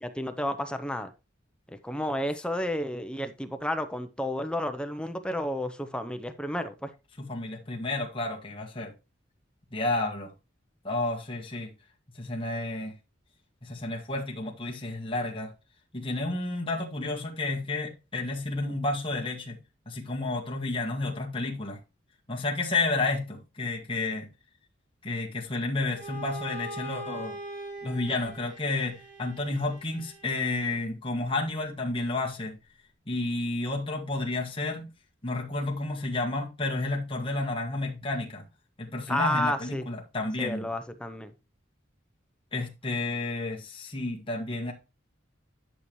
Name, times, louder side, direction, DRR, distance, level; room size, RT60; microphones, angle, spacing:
voice 1, 0.2-1.1 1.8-6.9 39.1-39.9 40.4-41.3, left 1 dB, 5° left, 0.6 m, -31 dB
voice 2, 7.2-8.9 9.7-10.3 10.8-11.7 12.2-13.0 13.6-15.5 15.9-19.6 19.9-21.8 22.3-24.3 25.0-27.4 27.8-32.6 33.1-34.9 35.2-38.5 38.8-40.7 42.5-44.7, left 2 dB, 25° left, 1.8 m, -31 dB
Bowed string instrument, 25.9-30.7, right 1 dB, 40° right, 3.1 m, -42 dB
11.0 x 6.9 x 3.1 m
head